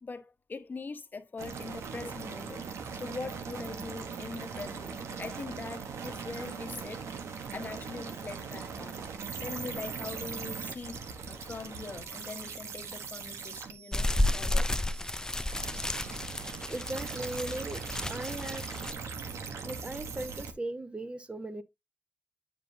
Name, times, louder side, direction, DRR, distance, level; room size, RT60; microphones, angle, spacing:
voice 1, 0.0-7.2 7.5-9.1 9.4-14.7, left 4 dB, 40° left, 1.1 m, -42 dB
sound 1, 1.4-20.5, right 5 dB, 90° right, 1.0 m, -40 dB
sound 2, 13.9-18.9, left 1 dB, 15° left, 0.4 m, -32 dB
voice 2, 16.7-17.8 18.1-18.6 19.6-21.6, right 2 dB, 25° right, 1.1 m, -38 dB
9.3 x 5.2 x 2.7 m
cardioid pair, 75°, 5 cm